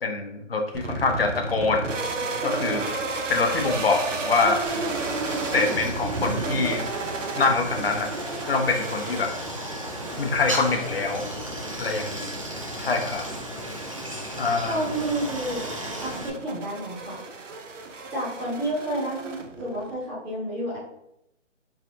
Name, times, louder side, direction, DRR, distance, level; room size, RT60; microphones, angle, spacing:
voice 1, 0.0-1.9 2.4-3.0 3.3-4.6 5.5-6.8 7.3-8.1 8.5-9.3 10.2-11.2 11.8-12.4 12.8-13.2 14.4-14.8, left 3 dB, 50° left, 4 dB, 0.8 m, -25 dB
sound 1, 0.7-19.9, right 3 dB, 80° right, 0.8 m, -33 dB
Stream, 4.6-16.3, right 1 dB, 30° right, 0.4 m, -35 dB
voice 2, 14.7-15.6 15.9-17.2 18.1-20.8, right 1 dB, ahead, -11 dB, 0.7 m, -30 dB
3.7 x 3.3 x 2.8 m, 0.79 s
figure-of-eight pair, 160°, 37 cm